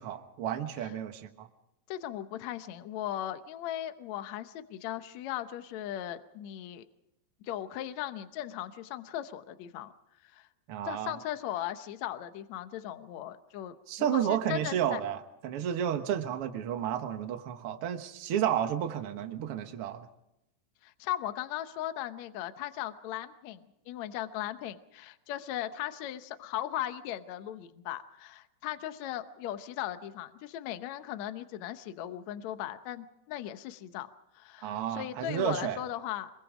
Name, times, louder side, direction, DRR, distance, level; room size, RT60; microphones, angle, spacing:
voice 1, 0.0-1.5 10.7-11.2 13.9-20.1 34.6-35.8, right 9 dB, 55° right, 6 dB, 1.7 m, -32 dB
voice 2, 1.9-6.9 7.4-9.9 10.2-10.5 10.9-15.0 20.8-23.6 23.9-36.3, left 12 dB, 65° left, 10 dB, 1.9 m, -38 dB
26.0 x 22.5 x 5.0 m, 0.82 s
omnidirectional pair, 4.1 m